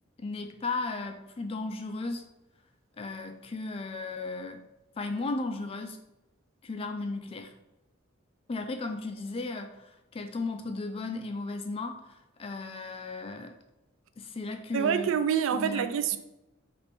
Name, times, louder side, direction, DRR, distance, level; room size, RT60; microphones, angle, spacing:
voice 1, 0.2-2.2 3.0-4.6 5.0-6.0 6.6-7.6 8.5-13.6 14.2-15.2 15.5-15.9, left 3 dB, 30° left, 0.3 m, -35 dB
voice 2, 14.7-16.2, right 8 dB, 75° right, 0.3 m, -26 dB
4.1 x 2.5 x 3.4 m
head